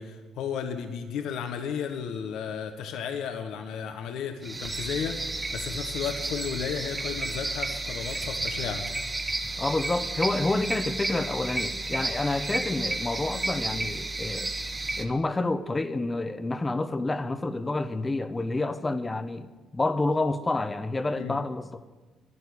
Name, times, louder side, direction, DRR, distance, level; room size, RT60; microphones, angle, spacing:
voice 1, 0.0-8.9 21.2-21.4, left 7 dB, 85° left, 6 dB, 1.2 m, -34 dB
sound 1, 4.4-15.0, right 2 dB, 20° right, 1.4 m, -32 dB
voice 2, 9.6-14.5 15.0-19.5 19.7-21.8, left 2 dB, 20° left, 11 dB, 1.0 m, -28 dB
11.0 x 10.5 x 9.8 m, 1.3 s
cardioid pair, 90°, 0 cm